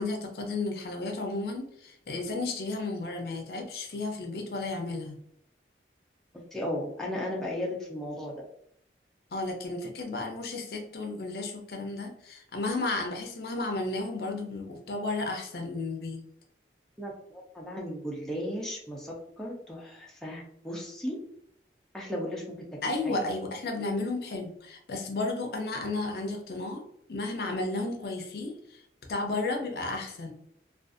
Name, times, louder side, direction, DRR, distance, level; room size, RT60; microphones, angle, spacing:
voice 1, 0.0-5.2 9.3-16.2 22.8-26.8 27.1-28.8 29.1-30.3, left 2 dB, 60° left, 3 dB, 0.5 m, -33 dB
voice 2, 6.5-8.4 17.0-21.1 21.9-22.6 23.0-23.2, left 1 dB, 5° left, -4 dB, 0.4 m, -35 dB
2.5 x 2.3 x 2.4 m, 0.71 s
head